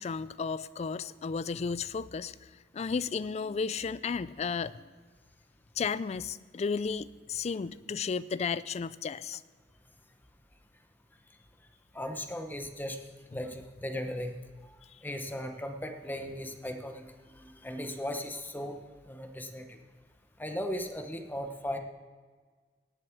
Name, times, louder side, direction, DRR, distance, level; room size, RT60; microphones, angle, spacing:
voice 1, 0.0-4.8 5.8-9.4, left 5 dB, 40° left, 18 dB, 0.3 m, -33 dB
voice 2, 11.9-13.0 13.3-14.3 15.0-17.1 17.4-18.8 19.1-19.8 20.4-21.8, left 1 dB, 10° left, 6 dB, 0.9 m, -37 dB
18.0 x 7.4 x 4.5 m, 1.5 s
head